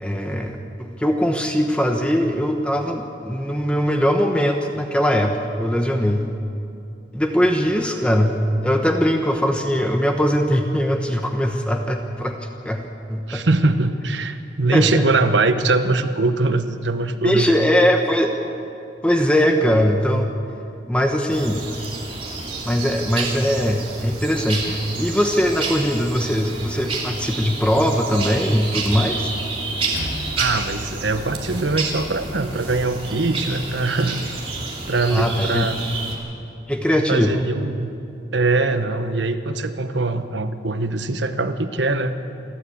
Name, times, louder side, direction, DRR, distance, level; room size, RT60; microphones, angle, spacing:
voice 1, 0.0-6.3 7.1-12.4 12.6-13.5 14.7-15.0 17.2-18.4 19.0-20.3 20.9-21.6 22.6-29.3 35.1-35.7 36.7-37.5, equal, 5° left, 3 dB, 1.0 m, -21 dB
voice 2, 13.3-17.6 30.4-34.2 34.9-35.8 37.1-38.0 38.3-42.3, right 3 dB, 90° right, 9 dB, 1.1 m, -22 dB
sound 1, 21.3-36.1, right 3 dB, 30° right, 2.9 m, -30 dB
sound 2, 29.9-34.5, left 1 dB, 75° left, 1.9 m, -37 dB
28.0 x 11.5 x 8.5 m, 2.7 s
head